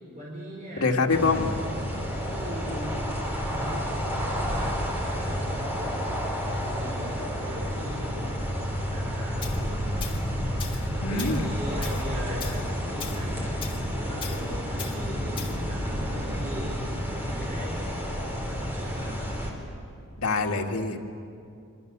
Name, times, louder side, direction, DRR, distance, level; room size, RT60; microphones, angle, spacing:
voice 1, 0.2-0.9 1.4-1.5 2.3-3.0 3.3-6.2 6.6-8.5 8.9-9.9 10.9-16.8 17.1-17.8 18.4-19.2, equal, 35° right, -5 dB, 4.8 m, -39 dB
voice 2, 0.8-1.5 11.0-11.5 20.2-21.0, left 3 dB, 80° left, 2 dB, 1.9 m, -25 dB
sound 1, 1.1-19.5, equal, 10° right, 3.7 m, -30 dB
Tools, 9.4-9.6 10.0-10.2 10.6-10.9 11.2-11.4 11.8-12.0 12.4-12.6 13.0-13.2 13.6-13.8 14.2-14.4 14.8-15.0 15.4-15.6, left 7 dB, 25° left, 1.9 m, -38 dB
27.0 x 25.5 x 6.8 m, 2.5 s
head